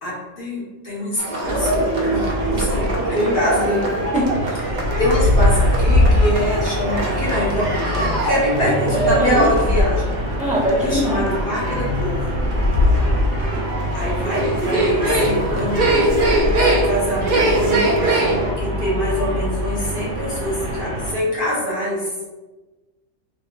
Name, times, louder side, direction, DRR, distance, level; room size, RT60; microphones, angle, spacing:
voice 1, 0.0-3.9 4.7-10.1 10.8-12.4 13.9-16.0 16.7-22.1, left 1 dB, 50° left, -6 dB, 0.9 m, -24 dB
sound 1, 1.2-18.5, right 1 dB, 85° right, 0.4 m, -23 dB
sound 2, 1.4-21.1, right 1 dB, 40° right, 0.9 m, -26 dB
sound 3, 2.4-3.0 4.7-6.4 7.0-7.1 8.5-10.0 11.5-13.4 15.1-16.6, left 2 dB, 85° left, 1.0 m, -21 dB
voice 2, 4.1-4.6 9.2-9.5 10.4-11.2, equal, 5° right, -9 dB, 0.7 m, -22 dB
2.9 x 2.5 x 2.5 m, 1.2 s
omnidirectional pair, 1.3 m